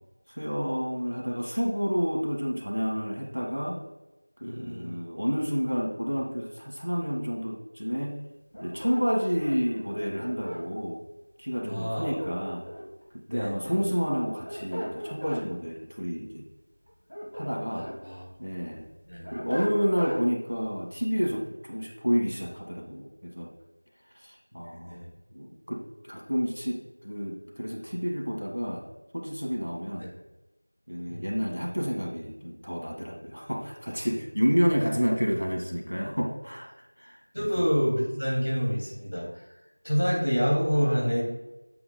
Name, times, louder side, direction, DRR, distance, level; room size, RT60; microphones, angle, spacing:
voice 1, 0.3-3.8 4.4-8.2 8.6-11.0 11.4-12.6 13.3-16.4 17.3-17.9 18.4-18.8 19.3-23.5 24.2-25.0 25.3-25.8 26.1-28.9 29.1-30.1 30.9-36.7 37.0-37.6, equal, 75° right, 0 dB, 1.9 m, -30 dB
voice 2, 4.4-5.0 11.7-12.2 13.3-13.8 17.8-18.3 19.1-19.4 24.8-25.1 29.9-30.1 31.1-31.5 37.3-39.4 39.8-41.2, equal, 55° left, -2 dB, 2.6 m, -28 dB
sound 1, 8.5-10.6 11.9-13.0 14.2-15.4 16.9-18.0 18.4-20.2, equal, 40° left, 1.8 m, -37 dB
7.7 x 7.4 x 2.3 m, 0.99 s
figure-of-eight pair, 180°, 0 cm